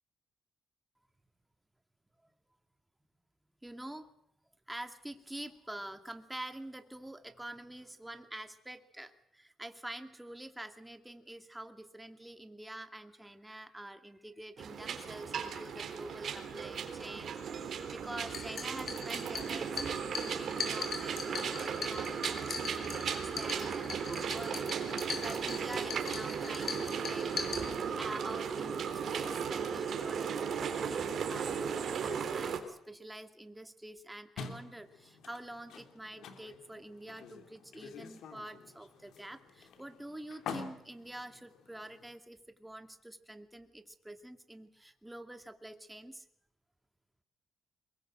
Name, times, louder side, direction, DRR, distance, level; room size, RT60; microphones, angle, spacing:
voice 1, 3.6-4.1 4.7-19.8 20.2-27.3 28.0-46.3, right 1 dB, 10° right, 7 dB, 2.3 m, -47 dB
sound 1, 14.6-32.6, right 6 dB, 60° right, 3.5 m, -36 dB
sound 2, 18.2-28.2, left 5 dB, 55° left, 6.8 m, -41 dB
sound 3, 34.4-42.1, left 6 dB, 75° left, 3.1 m, -48 dB
23.5 x 21.5 x 7.7 m, 0.74 s
cardioid pair, 90°, 0 cm